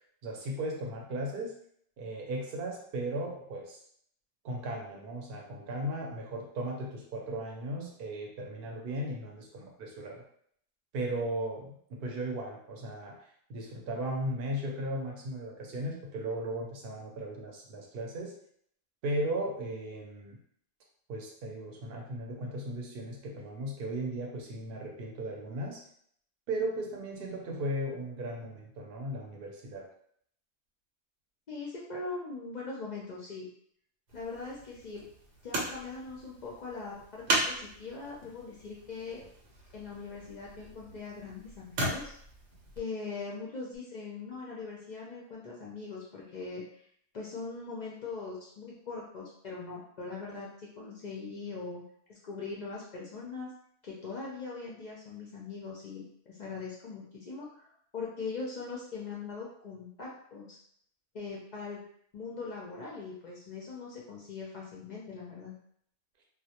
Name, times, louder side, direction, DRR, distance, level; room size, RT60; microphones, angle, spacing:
voice 1, 0.2-1.5 2.0-3.8 4.4-10.2 10.9-13.2 13.5-18.3 19.0-20.4 21.1-25.8 26.5-29.9, right 1 dB, 65° right, 0 dB, 0.7 m, -36 dB
voice 2, 31.5-33.5 34.1-35.0 35.4-39.2 39.7-42.1 42.8-46.6 47.1-50.5 50.8-51.8 52.1-53.5 53.8-60.6 61.1-61.8 62.1-65.5, left 4 dB, 55° left, -4 dB, 0.5 m, -41 dB
sound 1, 34.1-42.8 43.7-43.8, right 1 dB, 85° right, 0.9 m, -37 dB
2.1 x 2.1 x 2.8 m, 0.65 s
omnidirectional pair, 1.2 m